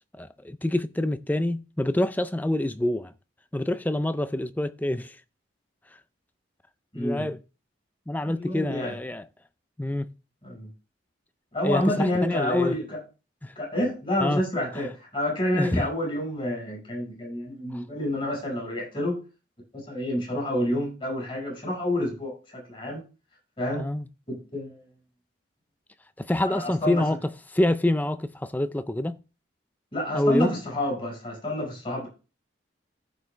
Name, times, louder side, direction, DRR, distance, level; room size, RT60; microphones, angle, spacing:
voice 1, 0.1-3.1 3.5-5.2 6.9-7.4 8.1-9.2 9.8-10.1 11.6-12.8 13.4-13.5 14.2-14.4 15.5-15.9 17.7-17.8 23.7-24.1 26.2-29.2 30.1-30.5, left 1 dB, 10° left, 0.4 m, -26 dB
voice 2, 6.9-7.2 8.2-8.9 10.4-10.7 11.5-13.0 13.5-19.2 19.7-23.0 23.6-23.9 24.3-24.8 26.5-27.0 29.9-32.1, left 1 dB, 25° left, 5.0 m, -28 dB
14.5 x 4.8 x 3.3 m
head